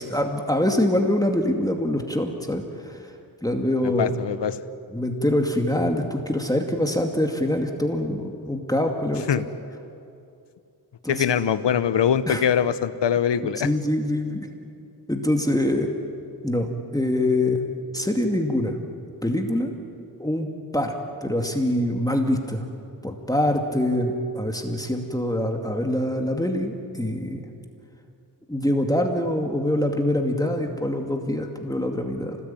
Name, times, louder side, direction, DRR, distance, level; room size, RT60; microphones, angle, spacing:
voice 1, 0.0-3.1 3.4-4.1 4.9-9.3 11.0-11.2 12.3-12.4 13.6-14.5 15.1-15.9 16.4-17.6 17.9-18.8 19.2-19.7 20.2-21.0 21.2-22.6 23.0-27.4 28.5-32.4, left 1 dB, 10° left, 2 dB, 2.4 m, -24 dB
voice 2, 3.8-4.6 9.3-9.4 11.1-13.7, left 8 dB, 85° left, 13 dB, 1.0 m, -22 dB
26.0 x 19.5 x 9.1 m, 2.6 s
cardioid pair, 65°, 42 cm